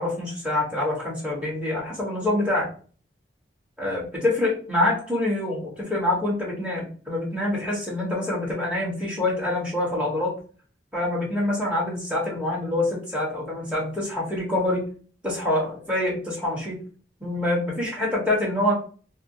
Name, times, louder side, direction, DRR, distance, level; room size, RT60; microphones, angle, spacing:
voice 1, 0.0-2.7 3.8-10.3 10.9-14.8 15.2-16.8 17.2-18.7, left 1 dB, 5° right, -4 dB, 1.2 m, -26 dB
4.3 x 2.0 x 2.6 m, 0.40 s
head